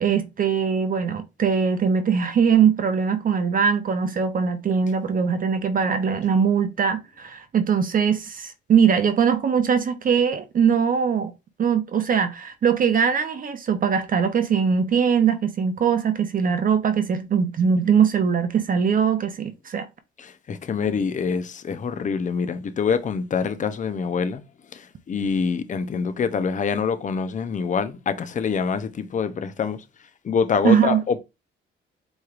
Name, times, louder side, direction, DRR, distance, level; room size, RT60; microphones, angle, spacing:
voice 1, 0.0-11.3 11.6-19.9 30.6-31.0, right 7 dB, 45° right, 0.6 m, -21 dB
voice 2, 20.2-24.4 24.7-24.8 25.1-29.8 30.2-31.2, left 6 dB, 40° left, 0.6 m, -25 dB
4.5 x 3.1 x 2.4 m
cardioid pair, 90°, 20 cm